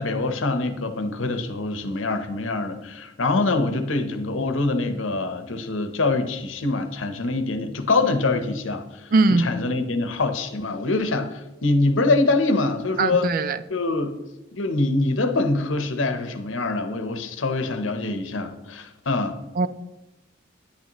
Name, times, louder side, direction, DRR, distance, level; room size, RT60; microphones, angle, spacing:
voice 1, 0.0-13.3 13.7-14.2 14.5-19.4, left 3 dB, 80° left, 8 dB, 0.9 m, -24 dB
voice 2, 9.1-9.5 13.0-13.6 19.6-19.7, right 3 dB, 45° right, 14 dB, 0.4 m, -20 dB
9.9 x 8.7 x 3.0 m, 1.0 s
head